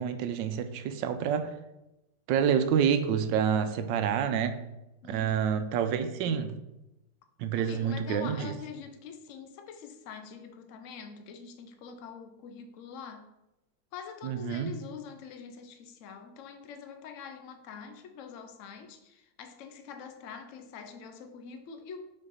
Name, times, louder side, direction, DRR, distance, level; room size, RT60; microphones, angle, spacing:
voice 1, 0.0-1.5 2.3-4.6 5.0-6.6 7.4-8.5 14.2-14.7, right 8 dB, 90° right, 10 dB, 1.3 m, -28 dB
voice 2, 5.0-5.5 7.6-13.3 13.9-22.0, left 6 dB, 60° left, 6 dB, 0.8 m, -45 dB
5.3 x 4.7 x 4.0 m, 0.95 s
omnidirectional pair, 1.9 m